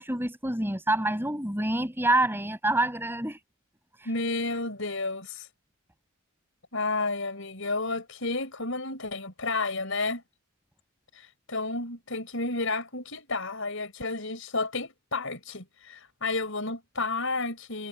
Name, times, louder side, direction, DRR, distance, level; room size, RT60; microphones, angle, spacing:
voice 1, 0.0-3.4 4.0-4.1, right 1 dB, 10° right, 6.1 m, -27 dB
voice 2, 4.0-5.5 6.7-10.2 11.1-17.9, left 3 dB, 65° left, 6.8 m, -31 dB
head